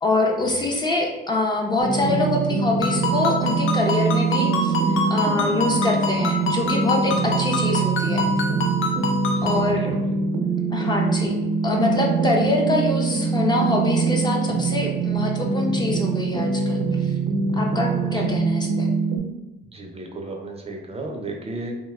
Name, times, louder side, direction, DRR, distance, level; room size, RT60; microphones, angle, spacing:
voice 1, 0.0-4.7 5.1-8.3 9.4-9.9 10.7-11.3 11.6-16.8 17.6-18.9, left 2 dB, 20° left, 0 dB, 0.5 m, -24 dB
sound 1, 1.8-19.2, right 4 dB, 80° right, 0.6 m, -24 dB
Ringtone, 2.8-9.7, left 2 dB, 80° left, 0.5 m, -27 dB
voice 2, 9.3-10.1 12.2-12.5 18.0-18.4 19.7-21.7, right 2 dB, 30° right, 2 dB, 0.5 m, -35 dB
2.7 x 2.1 x 3.3 m, 1.0 s
cardioid pair, 90°, 20 cm